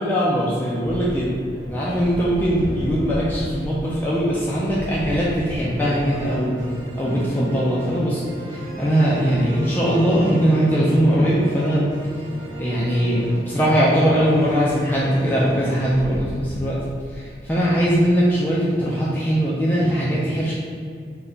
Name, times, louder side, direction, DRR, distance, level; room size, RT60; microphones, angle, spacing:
voice 1, 0.0-1.3 1.7-12.3 12.6-20.5, equal, 10° left, -7 dB, 0.3 m, -21 dB
sound 1, 0.8-18.4, right 1 dB, 85° right, 0.7 m, -35 dB
3.3 x 2.1 x 3.8 m, 2.2 s
head